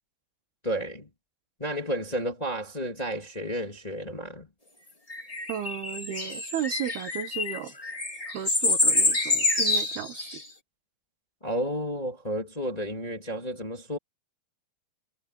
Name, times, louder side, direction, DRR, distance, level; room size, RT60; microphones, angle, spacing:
voice 1, 0.6-1.1 1.6-4.5 11.4-14.0, equal, 10° left, 2.2 m, -32 dB
sound 1, 5.1-10.4, left 2 dB, 30° left, 0.7 m, -27 dB
voice 2, 5.5-7.7 8.3-10.4, right 9 dB, 75° right, 3.4 m, -34 dB
omnidirectional pair, 4.7 m